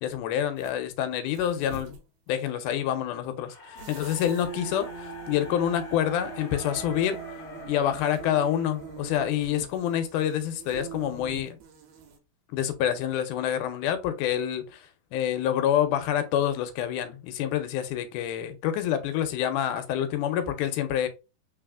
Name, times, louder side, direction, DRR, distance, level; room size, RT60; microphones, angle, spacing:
voice 1, 0.0-1.9 2.3-7.2 7.7-11.6 12.5-21.1, left 10 dB, 90° left, 2.1 m, -27 dB
sound 1, 0.6-0.8 1.3-2.0 3.8-12.2, right 5 dB, 75° right, 2.0 m, -43 dB
sound 2, 3.4-9.6, equal, 55° left, 0.4 m, -44 dB
4.1 x 3.8 x 2.3 m
omnidirectional pair, 3.6 m